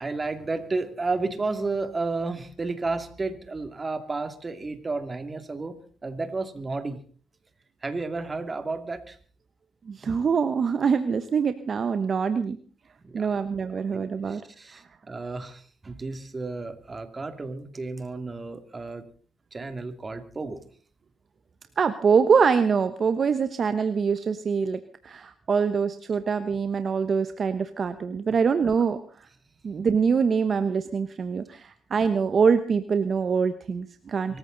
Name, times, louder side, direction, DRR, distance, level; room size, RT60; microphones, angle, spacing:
voice 1, 0.0-7.0 7.8-9.2 13.0-13.4 13.9-19.1 19.5-20.6 34.3-34.4, right 3 dB, 25° right, 8 dB, 2.6 m, -32 dB
voice 2, 9.9-12.6 13.1-14.4 14.7-14.8 21.8-29.0 29.6-34.4, right 6 dB, 45° right, 10 dB, 1.1 m, -24 dB
25.0 x 14.5 x 4.0 m, 0.43 s
cardioid pair, 90°, 0 cm